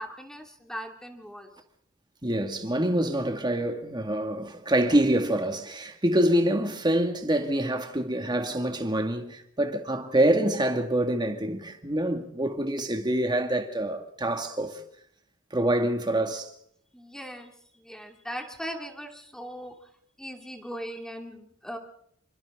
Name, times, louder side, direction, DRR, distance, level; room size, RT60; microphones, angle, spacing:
voice 1, 0.0-1.5 16.9-19.9 20.2-21.8, equal, 5° left, 2.7 m, -39 dB
voice 2, 2.2-14.8 15.5-16.5, right 1 dB, 20° right, 2.2 m, -26 dB
28.5 x 25.0 x 3.9 m
head